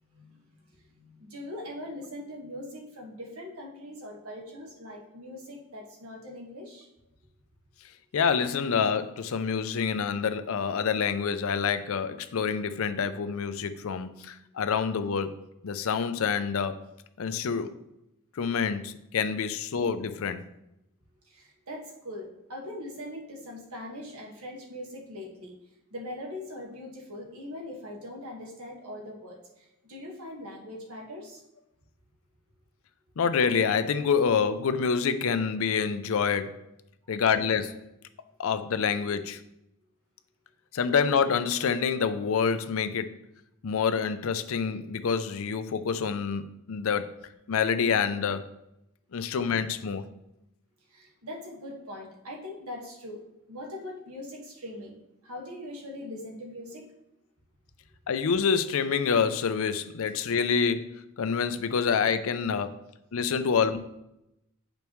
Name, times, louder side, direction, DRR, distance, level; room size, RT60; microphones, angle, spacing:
voice 1, 0.1-0.5 0.9-6.9 21.2-25.6 25.9-31.4 50.9-53.2 53.5-55.0 55.2-56.9, left 1 dB, 80° right, 1.6 m, -41 dB
voice 2, 8.1-15.4 15.6-16.8 17.2-17.7 18.4-20.4 33.2-36.6 37.1-37.8 38.4-39.4 40.7-43.2 43.6-48.5 49.1-50.1 58.1-62.8 63.1-63.8, left 6 dB, 65° left, 0.5 m, -27 dB
8.1 x 5.2 x 3.1 m
head